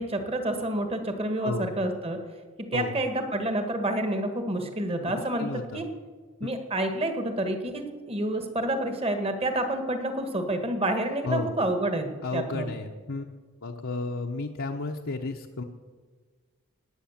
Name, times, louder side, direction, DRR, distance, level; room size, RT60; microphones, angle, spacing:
voice 1, 0.0-2.2 2.7-5.5 5.7-5.8 6.4-12.7, right 1 dB, 25° right, 6 dB, 1.6 m, -28 dB
voice 2, 1.4-1.8 2.7-2.9 5.4-5.8 6.4-6.5 11.2-11.5 12.2-13.3 13.6-15.6, left 3 dB, 60° left, 0 dB, 0.9 m, -32 dB
19.0 x 8.7 x 7.3 m, 1.5 s
head